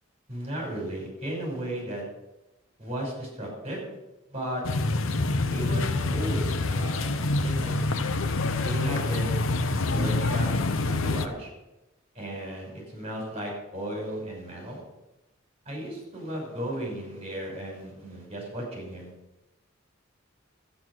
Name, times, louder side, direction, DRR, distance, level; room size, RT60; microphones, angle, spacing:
voice 1, 0.3-2.0 2.8-3.8 4.3-4.6 5.5-7.1 7.4-7.9 8.6-9.3 9.9-10.5 10.8-11.5 12.1-14.8 15.7-19.1, right 1 dB, 30° right, -1 dB, 5.6 m, -35 dB
sound 1, 4.6-11.3, left 2 dB, 80° left, 0.8 m, -26 dB
13.0 x 9.4 x 6.3 m, 0.97 s
head